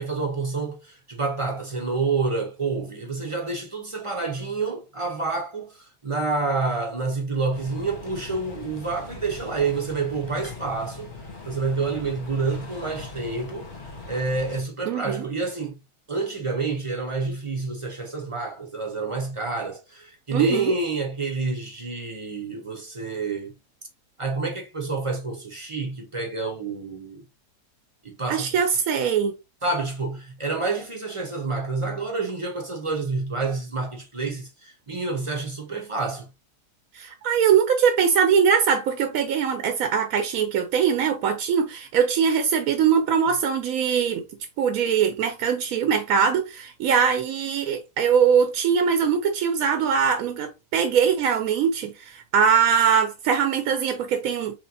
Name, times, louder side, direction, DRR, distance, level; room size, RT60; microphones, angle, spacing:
voice 1, 0.0-11.1 11.4-13.7 14.1-15.8 16.1-23.5 24.2-27.2 28.0-28.6 29.6-36.3, right 3 dB, 30° right, 0.5 m, -28 dB
sound 1, 7.5-14.6, left 3 dB, 35° left, 0.9 m, -40 dB
voice 2, 14.9-15.3 20.3-20.7 28.3-29.3 36.9-44.2 44.6-54.6, right 7 dB, 70° right, 1.0 m, -22 dB
4.4 x 3.2 x 2.7 m
omnidirectional pair, 1.7 m